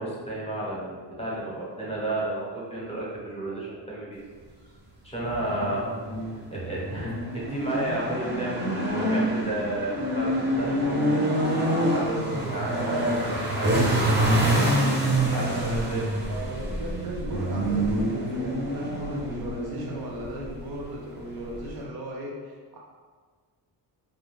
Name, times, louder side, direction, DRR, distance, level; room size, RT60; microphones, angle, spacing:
voice 1, 0.0-4.2 5.0-5.8 6.5-14.6 15.0-16.0, right 1 dB, 15° left, -6 dB, 0.7 m, -32 dB
sound 1, 5.2-21.8, right 1 dB, 25° right, 0.6 m, -27 dB
voice 2, 5.5-6.2 16.2-22.8, right 1 dB, 65° right, -2 dB, 0.7 m, -37 dB
2.3 x 2.2 x 3.0 m, 1.5 s
cardioid pair, 105°, 41 cm